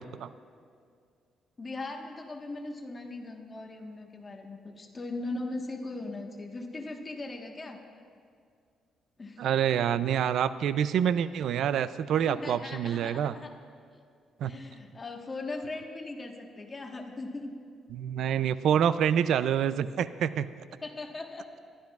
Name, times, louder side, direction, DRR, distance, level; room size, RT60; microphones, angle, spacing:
voice 1, 1.6-7.8 9.2-9.5 12.3-13.5 14.4-17.5 20.8-21.5, left 2 dB, 30° left, 2 dB, 1.3 m, -39 dB
voice 2, 9.4-13.3 14.4-14.5 17.9-20.5, right 9 dB, 75° right, 15 dB, 0.4 m, -27 dB
22.0 x 12.5 x 2.4 m, 2.2 s
cardioid pair, 90°, 0 cm